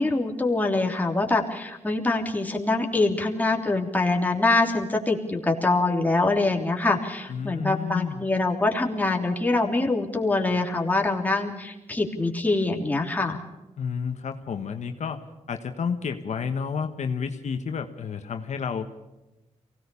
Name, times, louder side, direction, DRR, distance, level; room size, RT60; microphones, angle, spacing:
voice 1, 0.0-13.4, left 2 dB, 15° left, 1 dB, 3.3 m, -24 dB
voice 2, 7.3-8.2 13.8-18.9, left 6 dB, 70° left, 6 dB, 1.4 m, -31 dB
23.5 x 18.0 x 7.1 m, 1.0 s
cardioid pair, 90°, 12 cm